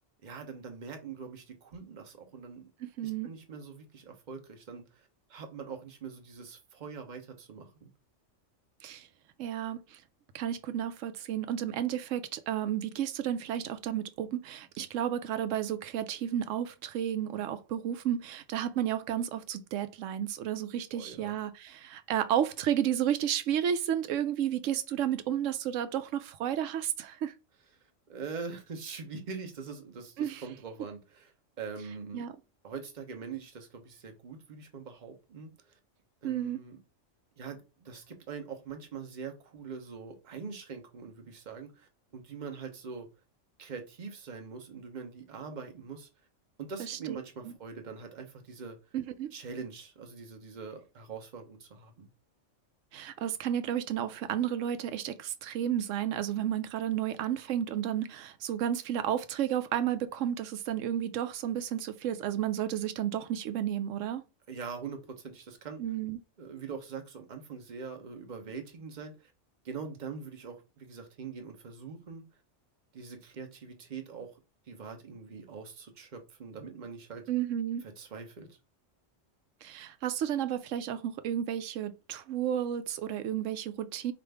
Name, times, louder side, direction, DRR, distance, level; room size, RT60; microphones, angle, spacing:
voice 1, 0.2-2.7 3.0-7.9 20.9-21.3 28.1-31.3 31.6-32.3 32.6-35.8 36.2-36.8 37.4-43.1 43.6-46.1 46.6-48.8 49.3-52.1 64.5-65.8 66.4-69.3 69.6-72.2 72.9-74.3 74.7-77.2 77.8-78.6, right 5 dB, 40° right, 0.9 m, -43 dB
voice 2, 2.8-3.3 8.8-9.1 9.4-10.0 10.3-27.3 30.2-30.4 32.1-32.3 36.2-36.6 46.8-47.2 48.9-49.3 52.9-64.2 65.8-66.2 77.3-77.8 79.6-84.1, right 10 dB, 80° right, 0.9 m, -32 dB
4.9 x 2.5 x 3.3 m
omnidirectional pair, 1.3 m